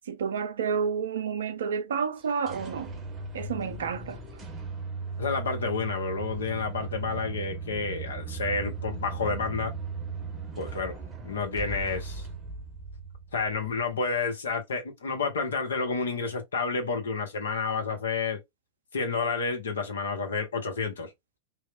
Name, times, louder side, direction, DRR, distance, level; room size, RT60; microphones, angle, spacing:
voice 1, 0.1-2.9 3.3-4.2, right 6 dB, 65° right, 0.4 m, -30 dB
sound 1, 2.2-13.8, right 4 dB, 20° right, 0.7 m, -37 dB
voice 2, 5.2-9.7 10.6-11.0 11.2-12.3 13.3-18.4 18.9-21.1, left 4 dB, 70° left, 0.7 m, -30 dB
3.0 x 2.0 x 2.2 m
figure-of-eight pair, 90°, 0 cm